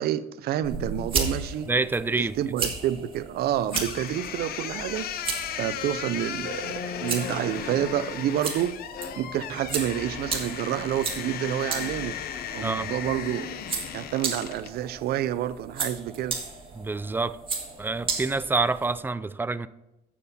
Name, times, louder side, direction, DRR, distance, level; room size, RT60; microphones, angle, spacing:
voice 1, 0.0-1.7 2.2-5.1 5.6-8.8 9.2-12.2 12.5-13.6 13.9-16.4, right 11 dB, 70° right, 0.6 m, -29 dB
sound 1, 0.6-19.0, right 4 dB, 30° right, 2.0 m, -35 dB
voice 2, 1.7-2.4 12.6-12.9 16.7-17.4 17.8-19.7, right 3 dB, 10° right, 0.3 m, -27 dB
sound 2, 3.7-14.8, left 9 dB, 65° left, 0.7 m, -35 dB
9.8 x 7.5 x 4.2 m
cardioid pair, 110°, 17 cm